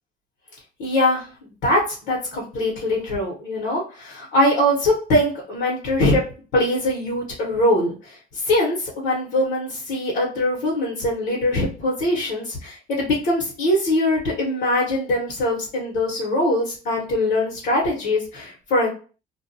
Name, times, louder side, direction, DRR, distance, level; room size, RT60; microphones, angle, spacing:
voice 1, 0.8-1.3 1.6-6.2 6.5-18.9, left 1 dB, 75° left, -4 dB, 1.1 m, -22 dB
2.5 x 2.2 x 2.7 m, 0.37 s
cardioid pair, 110°, 17 cm